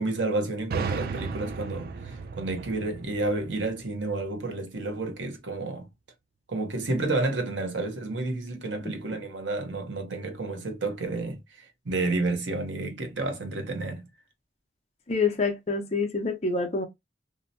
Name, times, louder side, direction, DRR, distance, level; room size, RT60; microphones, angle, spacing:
voice 1, 0.0-5.9 6.5-11.4 11.8-14.1, right 2 dB, 80° right, 0.7 m, -30 dB
sound 1, 0.7-4.4, right 5 dB, 50° right, 0.3 m, -35 dB
voice 2, 15.1-16.9, left 4 dB, 35° left, 0.6 m, -27 dB
2.7 x 2.1 x 2.6 m
head